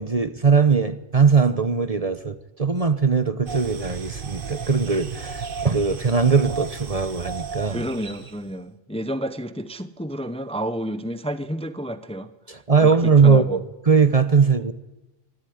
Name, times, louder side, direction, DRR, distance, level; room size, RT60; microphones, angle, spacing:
voice 1, 0.0-7.8 12.5-14.7, right 5 dB, 35° right, 11 dB, 1.0 m, -20 dB
sound 1, 3.5-8.4, right 5 dB, 50° right, 1.2 m, -35 dB
voice 2, 7.7-12.3 12.8-13.6, equal, 5° left, 11 dB, 0.8 m, -30 dB
24.5 x 14.0 x 9.5 m, 1.0 s
omnidirectional pair, 1.2 m